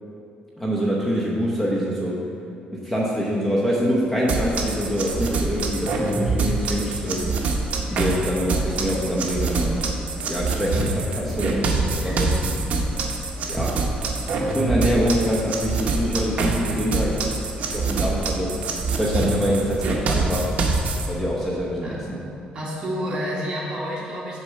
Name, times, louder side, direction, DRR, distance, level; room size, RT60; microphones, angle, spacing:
voice 1, 0.6-2.2 2.7-7.3 7.9-9.8 10.3-12.3 13.5-13.9 14.4-17.1 17.7-18.6 18.9-20.5 21.1-22.2, equal, 10° left, -5 dB, 0.8 m, -25 dB
sound 1, 4.3-21.1, right 3 dB, 50° right, 0.8 m, -25 dB
voice 2, 22.5-24.4, equal, 30° right, -6 dB, 1.8 m, -30 dB
6.4 x 4.5 x 6.3 m, 2.6 s
cardioid pair, 145°, 3 cm